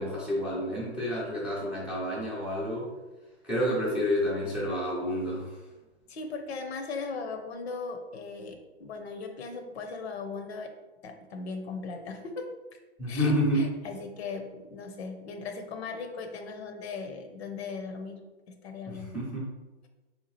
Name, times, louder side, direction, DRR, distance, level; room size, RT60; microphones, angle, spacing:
voice 1, 0.0-2.9 3.4-5.5 13.0-13.7 19.1-19.4, equal, 5° right, -8 dB, 0.3 m, -29 dB
voice 2, 6.1-10.7 11.0-12.4 13.1-18.2 18.5-19.1, left 4 dB, 70° left, 5 dB, 0.7 m, -38 dB
3.5 x 2.8 x 3.1 m, 1.1 s
hypercardioid pair, 120°, 33 cm